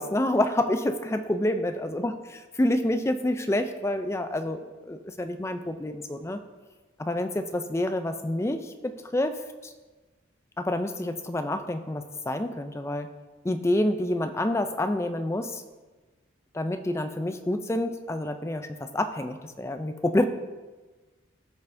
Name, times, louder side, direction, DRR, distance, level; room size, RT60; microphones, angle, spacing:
voice 1, 0.0-4.6 4.9-6.4 7.0-9.7 10.6-13.1 13.4-15.6 16.5-20.2, left 1 dB, 15° left, 8 dB, 0.3 m, -28 dB
13.5 x 5.4 x 2.6 m, 1.3 s
head